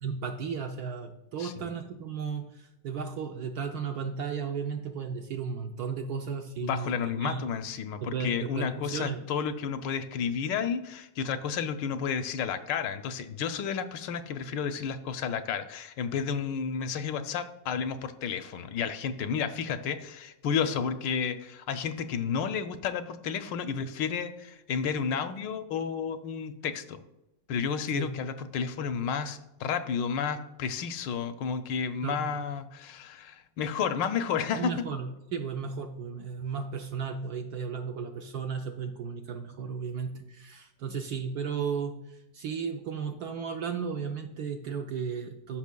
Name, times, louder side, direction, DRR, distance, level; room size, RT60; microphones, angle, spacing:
voice 1, 0.0-6.9 7.2-7.4 8.0-9.2 27.9-28.1 32.0-32.3 34.6-42.0 42.3-45.6, right 6 dB, 70° right, 4 dB, 0.9 m, -34 dB
voice 2, 1.4-1.7 6.6-27.0 27.5-34.8, left 6 dB, 75° left, 9 dB, 1.2 m, -31 dB
13.5 x 5.6 x 2.2 m, 0.90 s
omnidirectional pair, 2.1 m